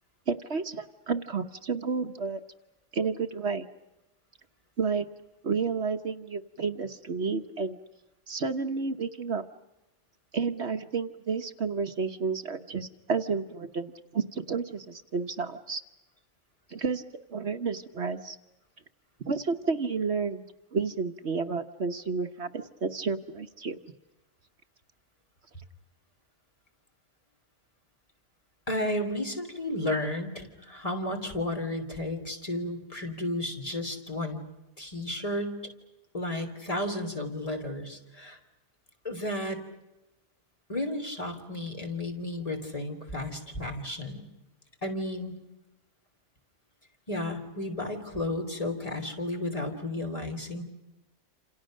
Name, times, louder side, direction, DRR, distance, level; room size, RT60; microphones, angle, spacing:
voice 1, 0.3-2.4 2.9-3.7 4.8-5.1 5.4-7.8 8.3-9.4 10.3-15.8 16.7-17.0 17.3-18.4 19.3-20.4 20.7-23.8, right 5 dB, 60° right, 7 dB, 1.3 m, -31 dB
voice 2, 28.7-34.4 34.8-35.6 36.1-38.4 39.0-39.6 40.7-44.2 44.8-45.3 47.1-50.6, left 1 dB, 30° left, 3 dB, 3.3 m, -33 dB
28.0 x 28.0 x 6.5 m, 1.0 s
omnidirectional pair, 1.3 m